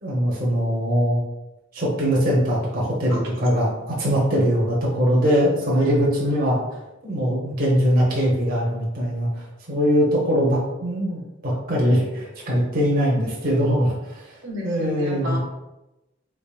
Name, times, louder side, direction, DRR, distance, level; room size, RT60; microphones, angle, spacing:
voice 1, 0.0-1.2 1.7-6.6 7.0-14.3 14.6-15.4, equal, 45° right, -4 dB, 0.8 m, -21 dB
voice 2, 14.4-15.4, equal, 70° right, -2 dB, 0.9 m, -31 dB
3.8 x 3.5 x 2.4 m, 0.97 s
head